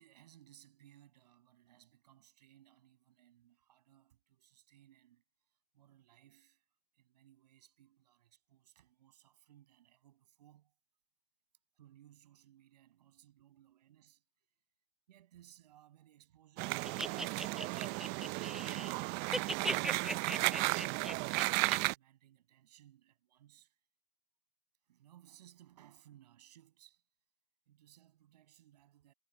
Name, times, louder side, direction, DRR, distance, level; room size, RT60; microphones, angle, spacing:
voice 1, 0.0-6.7 6.9-10.7 11.7-14.2 15.1-21.1 21.3-23.8 24.8-27.0 27.7-29.1, right 12 dB, 90° right, 6.6 m, -64 dB
sound 1, 16.6-21.9, right 27 dB, 55° right, 0.5 m, -34 dB
sound 2, 16.9-19.0 19.2-21.8, right 1 dB, ahead, 0.5 m, -39 dB
supercardioid pair, 110°, 20 cm